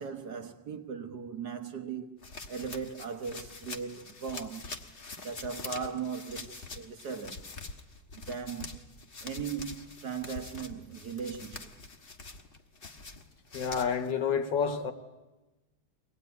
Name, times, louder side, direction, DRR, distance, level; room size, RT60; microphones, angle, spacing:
voice 1, 0.0-4.8 5.2-7.5 8.2-8.8 9.2-11.7, right 6 dB, 60° right, 1.4 m, -38 dB
sound 1, 2.2-14.1, left 3 dB, 30° left, 1.2 m, -45 dB
voice 2, 13.5-14.9, left 7 dB, 65° left, 1.9 m, -29 dB
23.0 x 18.5 x 9.4 m
omnidirectional pair, 2.2 m